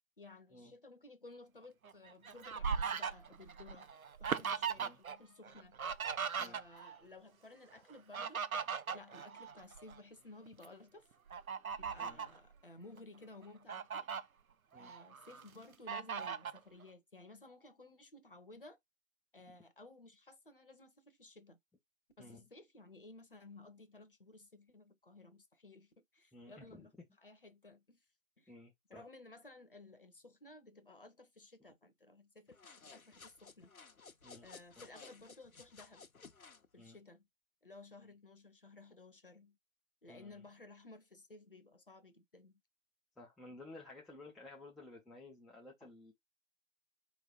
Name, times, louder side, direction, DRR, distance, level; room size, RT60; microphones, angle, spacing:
voice 1, 0.2-3.9 4.2-5.8 6.4-8.4 8.9-11.1 11.8-14.1 14.8-18.8 19.3-21.6 22.2-26.9 27.2-28.0 28.4-28.5 28.9-33.7 34.4-36.1 36.7-37.3 37.6-39.6 40.0-42.6 45.8-45.9, left 2 dB, 40° left, 0.7 m, -56 dB
Fowl, 1.8-5.2 5.4-7.0 7.9-10.0 10.5-10.7 11.3-12.4 13.0-13.1 13.4-14.2 14.7-15.4 15.9-16.6, right 6 dB, 85° right, 0.6 m, -39 dB
voice 2, 6.4-6.9 12.0-12.2 14.7-14.9 22.2-22.4 26.3-27.1 28.5-29.0 34.2-34.5 34.8-34.9 36.8-37.0 40.1-40.4 43.2-46.1, left 2 dB, ahead, 0.4 m, -54 dB
sound 1, 32.5-36.7, left 4 dB, 85° left, 0.8 m, -57 dB
4.5 x 3.1 x 2.3 m
figure-of-eight pair, 160°, 41 cm